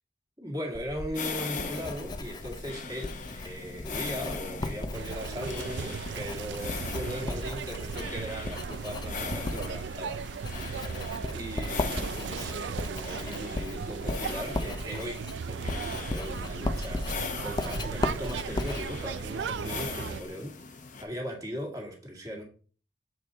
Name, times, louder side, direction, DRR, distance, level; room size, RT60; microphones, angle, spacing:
voice 1, 0.4-10.3 10.6-22.4, equal, 20° right, 2.0 m, -39 dB
Writing, 0.7-20.3, left 2 dB, 25° left, 0.4 m, -37 dB
sound 1, 1.1-21.0, left 5 dB, 45° left, 0.9 m, -41 dB
sound 2, 4.9-20.2, right 6 dB, 75° right, 0.4 m, -37 dB
6.8 x 5.1 x 3.9 m
head